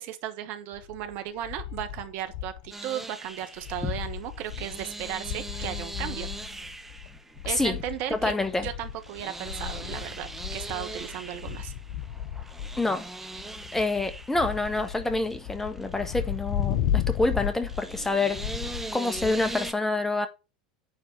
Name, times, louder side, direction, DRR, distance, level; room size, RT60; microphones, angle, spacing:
voice 1, 0.0-6.3 7.4-8.3 8.6-11.7, right 11 dB, 50° right, 1.3 m, -35 dB
sound 1, 0.7-2.7 3.0-3.1 3.4-19.7, left 10 dB, 55° left, 0.7 m, -35 dB
sound 2, 2.7-19.7, right 2 dB, 5° right, 0.9 m, -41 dB
voice 2, 7.4-7.8 8.1-8.7 12.8-13.1 13.7-18.4 18.9-20.3, left 2 dB, 10° left, 1.4 m, -27 dB
9.8 x 4.1 x 5.6 m
figure-of-eight pair, 80°, 4 cm